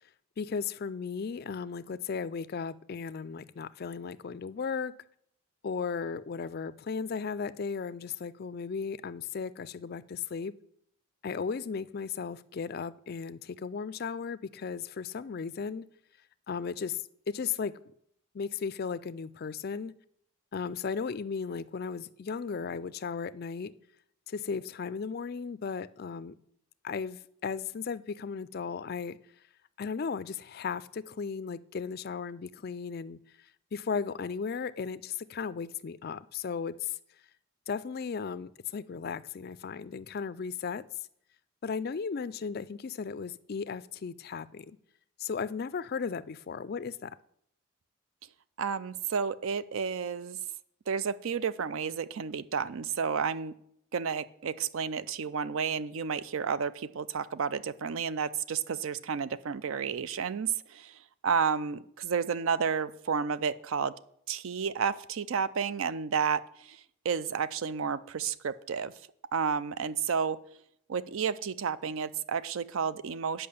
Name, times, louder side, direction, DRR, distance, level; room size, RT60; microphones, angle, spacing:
voice 1, 0.4-4.9 5.6-10.5 11.2-15.9 16.5-17.7 18.3-19.9 20.5-23.7 24.3-26.3 26.8-29.2 29.8-37.0 37.7-40.8 41.6-44.8 45.2-47.1, left 5 dB, 45° left, 16 dB, 0.3 m, -36 dB
voice 2, 48.6-50.4 50.9-53.5 53.9-63.9 64.3-66.8 67.0-68.9 69.3-70.4 70.9-73.5, right 6 dB, 65° right, 16 dB, 0.4 m, -31 dB
8.6 x 5.6 x 7.0 m, 0.71 s
head